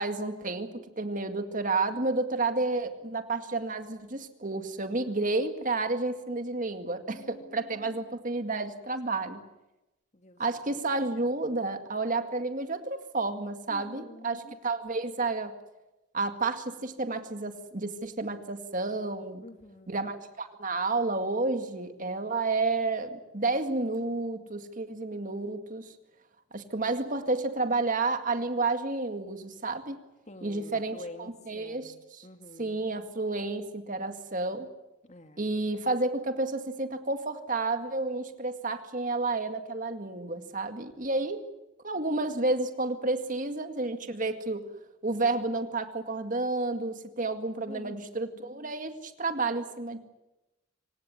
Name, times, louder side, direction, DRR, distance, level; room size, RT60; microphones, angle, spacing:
voice 1, 0.0-9.4 10.4-15.5 16.1-19.4 19.9-25.9 26.5-30.0 30.4-32.3 32.6-34.7 35.4-41.4 41.8-44.6 45.0-50.0, right 3 dB, 40° right, 8 dB, 2.1 m, -31 dB
voice 2, 7.1-8.2 10.1-10.4 10.7-10.8 13.7-14.6 19.4-20.1 30.3-33.1 35.0-35.6 47.7-48.7, left 1 dB, 35° left, 7 dB, 2.1 m, -48 dB
26.5 x 17.0 x 9.5 m, 0.98 s
head